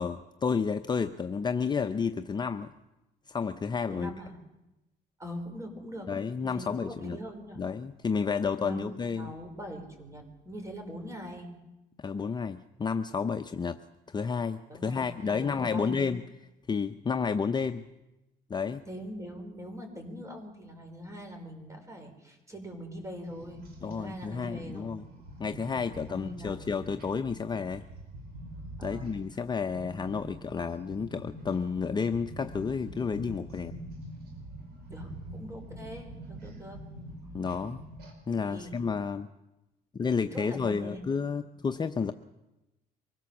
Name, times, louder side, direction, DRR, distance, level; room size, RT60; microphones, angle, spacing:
voice 1, 0.0-2.7 3.3-4.1 6.1-7.2 7.6-9.3 12.0-13.8 14.1-16.2 16.7-17.8 18.5-18.8 23.8-25.1 25.4-27.8 28.8-33.7 37.3-37.8 38.3-39.3 39.9-42.1, left 5 dB, 25° left, 8 dB, 0.7 m, -31 dB
voice 2, 3.9-4.4 5.2-6.1 6.4-7.7 8.6-11.5 14.7-16.2 18.9-25.0 26.1-26.7 28.8-29.2 34.9-36.8 38.3-38.9 40.2-41.0 41.6-41.7, equal, 20° right, 4 dB, 5.1 m, -42 dB
sound 1, 23.2-38.1, right 1 dB, 70° right, 5.4 m, -45 dB
24.5 x 17.0 x 7.3 m, 0.98 s
cardioid pair, 110°, 17 cm